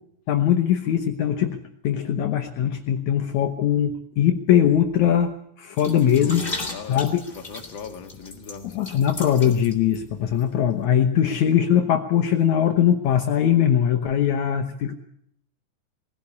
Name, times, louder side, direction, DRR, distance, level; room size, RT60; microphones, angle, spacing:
voice 1, 0.3-6.4 6.9-7.2 8.8-14.9, left 9 dB, 70° left, 6 dB, 2.2 m, -21 dB
sound 1, 5.8-10.0 10.3-10.4, left 3 dB, 20° left, 2.3 m, -36 dB
voice 2, 6.1-7.0 7.3-8.9, left 5 dB, 45° left, 4 dB, 2.0 m, -38 dB
21.0 x 16.5 x 8.4 m, 0.72 s
omnidirectional pair, 3.9 m